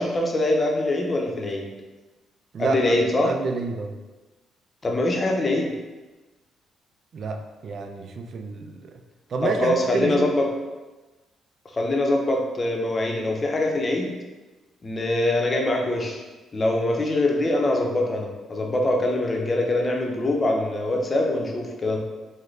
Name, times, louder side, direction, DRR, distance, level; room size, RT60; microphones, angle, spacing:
voice 1, 0.0-1.7 2.6-3.3 4.8-5.7 9.4-10.5 11.7-14.1 14.8-16.2 16.5-22.0, left 1 dB, 30° left, 1 dB, 0.6 m, -23 dB
voice 2, 2.5-3.0 3.2-3.9 7.1-9.0 9.3-10.3, right 4 dB, 55° right, 5 dB, 0.4 m, -29 dB
3.8 x 2.1 x 3.2 m, 1.2 s
cardioid pair, 90°, 0 cm